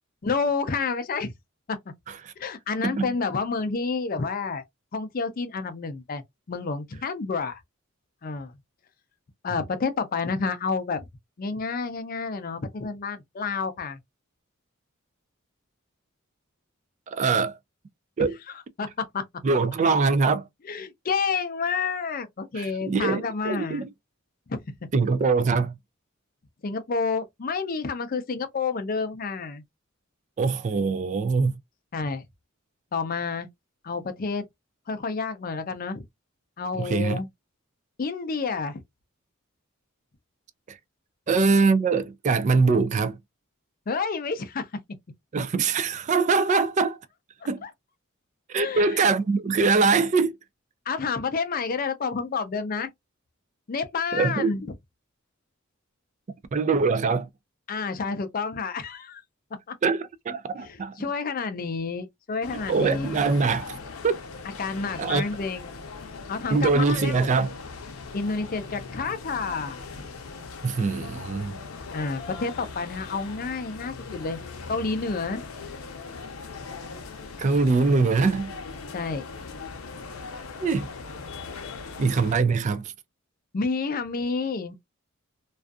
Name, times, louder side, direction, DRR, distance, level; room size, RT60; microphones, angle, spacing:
voice 1, 0.2-1.3 1.7-1.8 2.4-4.6 4.9-6.2 6.5-7.6 8.2-8.5 9.4-11.1 11.4-14.0 18.8-19.2 20.6-23.8 24.5-24.6 26.6-29.6 31.9-32.2 32.9-33.5 33.8-34.4 34.9-36.0 36.6-37.3 38.0-38.8 43.9-44.7 46.5-46.6 47.6-47.7 48.6-49.1 50.9-52.9 53.7-54.7 57.7-59.2 59.7-59.8 60.6-63.2 64.6-65.7 66.3-67.3 68.1-69.8 71.9-74.4 74.7-75.5 78.9-79.2 83.5-84.7, left 4 dB, 45° left, 0.5 m, -29 dB
voice 2, 17.1-17.6 18.2-18.4 19.4-20.4 22.6-23.9 24.9-25.8 30.4-31.5 36.8-37.2 40.7-40.8 41.3-43.2 45.3-47.0 47.5-47.6 48.5-50.4 54.1-54.5 56.5-57.3 59.8-61.0 62.7-63.8 64.0-64.2 65.0-65.2 66.5-67.5 70.6-71.6 77.4-78.5 80.6-80.9 82.0-82.9, right 4 dB, 35° right, 0.3 m, -23 dB
sound 1, 62.4-82.4, left 4 dB, 90° left, 0.6 m, -40 dB
2.5 x 2.3 x 2.3 m
head